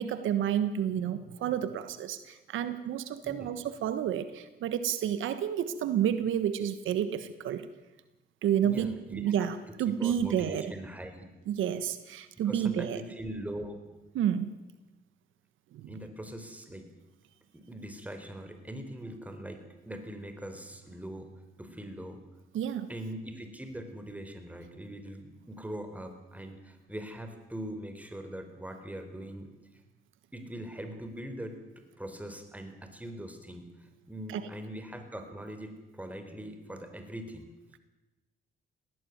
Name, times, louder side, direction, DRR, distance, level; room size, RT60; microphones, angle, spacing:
voice 1, 0.0-7.7 8.4-10.7 11.5-13.0 14.1-14.5 15.7-15.9 22.5-22.9 34.3-34.4, right 9 dB, 80° right, 11 dB, 1.4 m, -30 dB
voice 2, 8.6-9.5 9.9-11.3 12.4-13.8 15.9-16.9 17.5-21.3 21.6-22.2 22.9-29.5 30.3-37.5, right 1 dB, 5° right, 6 dB, 4.2 m, -42 dB
19.5 x 16.5 x 9.4 m, 1.1 s
cardioid pair, 90°, 20 cm